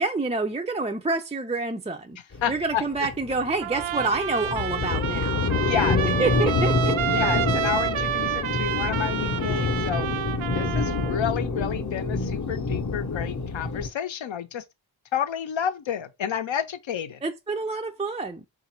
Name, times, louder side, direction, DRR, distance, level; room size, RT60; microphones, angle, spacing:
voice 1, 0.0-2.2 2.5-5.5 6.2-6.9 17.2-18.4, right 3 dB, 15° right, 0.3 m, -27 dB
sound 1, 2.3-13.9, left 3 dB, 40° left, 0.7 m, -27 dB
voice 2, 2.4-3.1 5.4-6.0 7.1-10.1 10.5-14.6 15.1-17.2, left 8 dB, 75° left, 0.6 m, -30 dB
Trumpet, 3.6-11.2, right 11 dB, 85° right, 0.6 m, -29 dB
3.9 x 2.5 x 4.3 m
wide cardioid pair, 75°, 46 cm